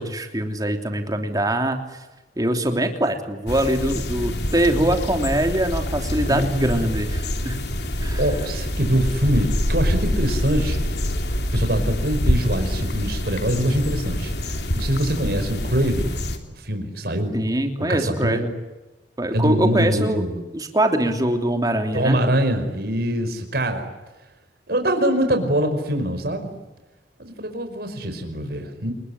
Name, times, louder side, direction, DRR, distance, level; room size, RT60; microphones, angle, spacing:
voice 1, 0.0-1.8 2.4-7.6 8.0-8.2 17.3-18.5 19.2-20.2 20.5-22.2, right 1 dB, 20° right, 5 dB, 3.1 m, -23 dB
sound 1, 3.5-16.4, left 1 dB, 65° left, 3.3 m, -26 dB
voice 2, 6.3-6.8 8.1-10.9 11.5-16.1 16.6-17.3 17.9-18.4 19.3-20.4 21.9-23.9 24.7-26.5 27.2-28.9, equal, 60° right, 6 dB, 5.3 m, -24 dB
29.0 x 21.0 x 9.8 m, 1.1 s
head